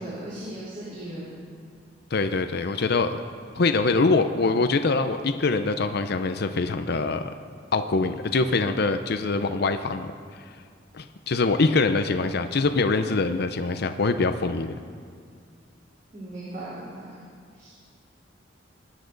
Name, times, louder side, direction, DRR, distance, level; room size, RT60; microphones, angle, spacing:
voice 1, 0.0-1.3 16.1-17.2 17.5-17.7, right 1 dB, 45° right, -10 dB, 3.7 m, -37 dB
voice 2, 2.1-3.2 3.5-7.3 7.7-10.1 10.9-14.7, left 3 dB, 60° left, 9 dB, 0.6 m, -24 dB
22.0 x 10.0 x 4.0 m, 2.2 s
head